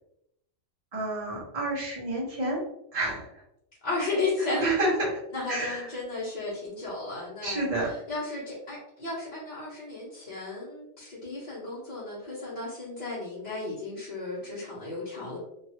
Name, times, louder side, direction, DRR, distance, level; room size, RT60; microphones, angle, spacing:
voice 1, 0.9-2.6 2.9-3.4 4.4-5.2 5.5-5.9 7.4-7.9, right 2 dB, 30° right, -6 dB, 1.2 m, -29 dB
voice 2, 3.8-4.7 5.3-15.4, left 3 dB, 40° left, -10 dB, 1.0 m, -34 dB
2.9 x 2.6 x 2.8 m, 0.79 s
omnidirectional pair, 1.2 m